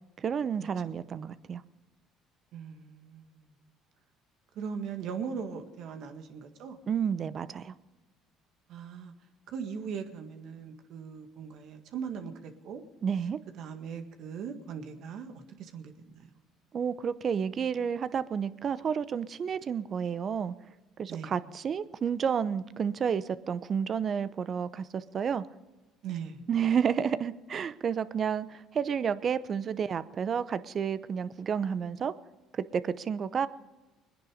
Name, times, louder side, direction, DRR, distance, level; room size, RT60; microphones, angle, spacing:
voice 1, 0.2-1.6 6.9-7.7 13.0-13.4 16.7-20.5 21.0-25.4 26.5-32.1 32.5-33.5, right 7 dB, 45° right, 15 dB, 0.8 m, -30 dB
voice 2, 2.5-3.5 4.6-6.8 8.7-9.1 9.5-12.8 13.6-16.3 21.1-21.3 26.0-26.4, right 6 dB, 65° right, 6 dB, 1.8 m, -39 dB
21.5 x 10.0 x 5.1 m, 1.2 s
hypercardioid pair, 65°, 0 cm